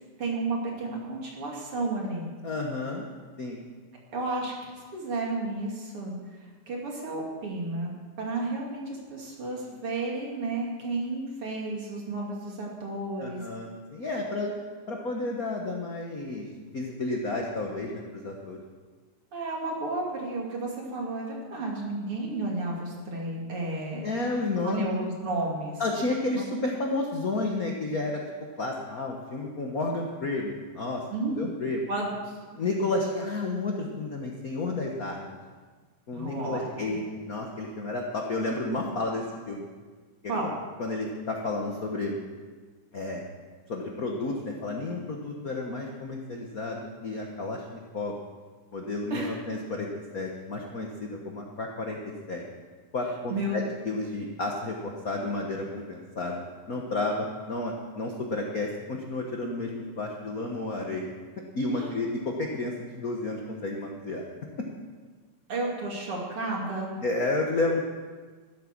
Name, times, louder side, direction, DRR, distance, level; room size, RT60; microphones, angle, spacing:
voice 1, 0.2-2.3 4.1-13.4 19.3-24.0 24.6-25.8 26.3-26.4 31.1-31.4 31.9-32.4 36.1-36.8 40.3-40.5 49.1-49.3 53.3-53.6 61.7-61.9 65.5-66.9, right 2 dB, 50° right, -2 dB, 3.3 m, -32 dB
voice 2, 2.4-3.0 3.4-3.6 13.2-14.5 14.9-16.5 16.7-18.6 24.0-24.9 25.8-28.2 28.6-31.0 31.4-31.8 32.5-35.4 36.1-39.6 40.2-40.5 40.8-42.2 42.9-43.2 43.7-48.1 48.7-52.0 52.3-52.4 52.9-56.4 56.7-61.1 61.5-64.2 67.0-67.8, left 2 dB, 50° left, 0 dB, 1.1 m, -31 dB
13.5 x 12.5 x 6.1 m, 1.4 s
omnidirectional pair, 3.4 m